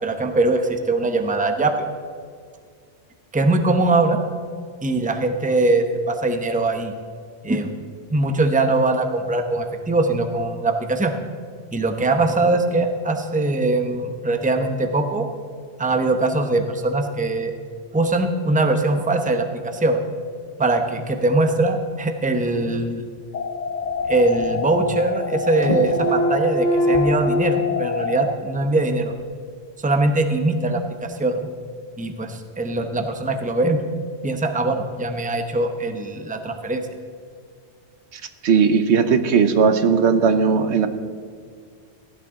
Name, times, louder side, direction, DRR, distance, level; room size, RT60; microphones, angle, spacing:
voice 1, 0.0-1.7 3.3-4.2 4.8-6.9 7.4-7.7 8.1-11.1 11.7-15.3 15.8-17.5 17.9-20.0 20.6-23.0 24.1-29.1 29.8-31.5 32.0-33.8 34.2-36.8, right 2 dB, 10° right, 6 dB, 0.7 m, -21 dB
sound 1, 23.2-24.1 24.4-25.4 25.6-27.2, equal, 35° left, 1.2 m, -25 dB
sound 2, 23.3-28.3, left 5 dB, 50° left, 0.6 m, -28 dB
voice 2, 38.1-40.9, right 6 dB, 80° right, 10 dB, 1.1 m, -18 dB
16.0 x 10.5 x 3.7 m, 2.1 s
omnidirectional pair, 1.1 m